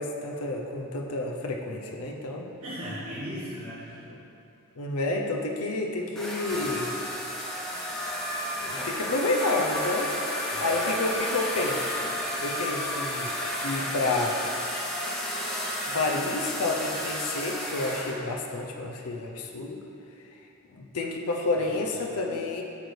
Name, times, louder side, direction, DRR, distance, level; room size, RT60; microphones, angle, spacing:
voice 1, 0.0-2.5 4.8-6.9 8.6-10.1 10.5-12.0 12.4-13.4 13.6-14.4 15.5-15.7 15.9-19.8 20.7-22.6, left 2 dB, 85° left, 1 dB, 0.7 m, -30 dB
voice 2, 2.6-4.1 10.5-10.7 21.6-22.2, equal, 75° right, -12 dB, 1.7 m, -38 dB
sound 1, 6.1-18.1, left 1 dB, ahead, 0.8 m, -32 dB
8.5 x 6.3 x 3.3 m, 2.7 s
head